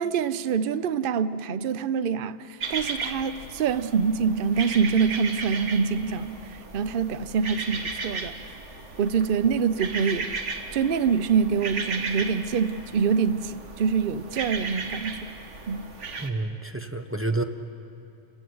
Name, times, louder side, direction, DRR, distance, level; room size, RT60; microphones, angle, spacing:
voice 1, 0.0-8.6 9.0-10.3 10.7-15.4 15.7-15.9, right 6 dB, 55° right, 13 dB, 0.8 m, -25 dB
sound 1, 2.6-16.3, right 4 dB, 80° right, 1.7 m, -35 dB
voice 2, 16.2-17.4, right 2 dB, 10° right, 6 dB, 0.9 m, -29 dB
28.5 x 18.0 x 7.8 m, 2.7 s
omnidirectional pair, 1.2 m